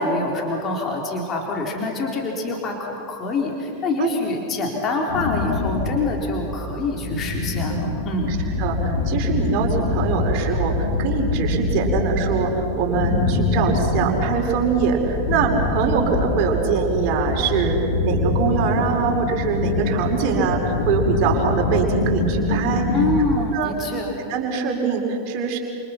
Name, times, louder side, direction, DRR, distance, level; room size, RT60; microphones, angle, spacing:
voice 1, 0.0-8.4 22.9-24.2, left 3 dB, 30° left, -1 dB, 4.1 m, -25 dB
sound 1, 5.1-23.2, left 2 dB, 60° left, 4.6 m, -24 dB
voice 2, 8.3-22.9 23.5-24.0 24.3-25.6, right 5 dB, 40° right, -1 dB, 5.4 m, -23 dB
28.5 x 28.5 x 6.0 m, 2.9 s
figure-of-eight pair, 90°, 0 cm